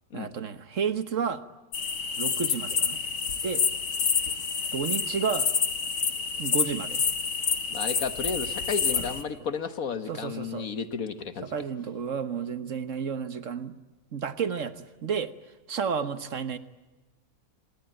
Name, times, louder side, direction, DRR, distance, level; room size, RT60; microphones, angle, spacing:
voice 1, 0.1-1.4 2.2-3.0 3.4-3.6 4.7-5.5 6.4-7.0 8.9-9.1 10.1-10.7 11.4-13.7 14.1-15.3 15.7-16.6, right 6 dB, 55° right, 11 dB, 1.5 m, -31 dB
sound 1, 1.7-9.2, left 6 dB, 80° left, 2.1 m, -28 dB
voice 2, 7.7-11.5, left 5 dB, 65° left, 10 dB, 1.7 m, -33 dB
26.5 x 20.0 x 9.0 m, 1.2 s
omnidirectional pair, 1.6 m